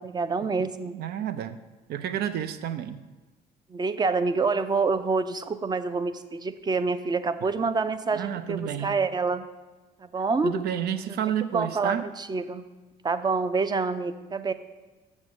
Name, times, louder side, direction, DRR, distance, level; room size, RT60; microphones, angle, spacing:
voice 1, 0.0-1.0 3.7-9.4 10.0-10.5 11.4-12.7 13.0-14.5, right 4 dB, 25° right, 12 dB, 0.6 m, -27 dB
voice 2, 0.9-1.6 1.9-3.0 8.1-9.0 10.4-12.0, right 9 dB, 70° right, 11 dB, 0.7 m, -30 dB
7.3 x 6.4 x 6.4 m, 1.2 s
cardioid pair, 110°, 17 cm